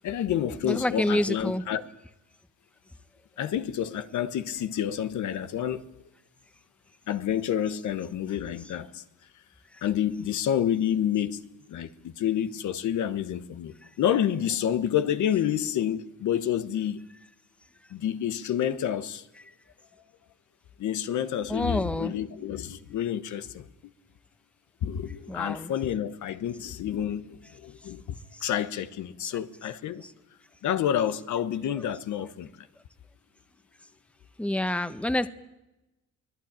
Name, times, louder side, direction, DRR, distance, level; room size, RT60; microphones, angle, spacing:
voice 1, 0.0-1.8 3.4-5.8 7.1-9.0 9.8-11.4 11.7-17.0 17.9-19.2 20.8-23.7 24.8-28.0 28.4-30.0 30.6-32.7, left 10 dB, 75° left, 1.2 m, -29 dB
voice 2, 0.6-1.6 9.7-9.8 21.5-22.1 25.3-25.7 34.4-35.3, left 1 dB, 5° left, 1.1 m, -28 dB
24.0 x 18.0 x 8.9 m
cardioid pair, 90°, 30 cm